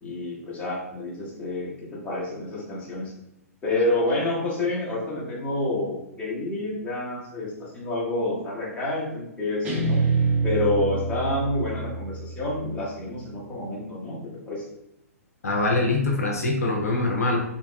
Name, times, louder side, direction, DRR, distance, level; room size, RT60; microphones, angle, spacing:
voice 1, 0.0-3.1 3.6-10.1 10.4-14.6, left 2 dB, 15° left, -6 dB, 0.8 m, -28 dB
Guitar, 9.6-12.9, right 3 dB, 20° right, 0.5 m, -26 dB
voice 2, 15.4-17.4, left 2 dB, 70° left, 0 dB, 0.5 m, -23 dB
2.8 x 2.2 x 2.2 m, 0.83 s
figure-of-eight pair, 115°, 8 cm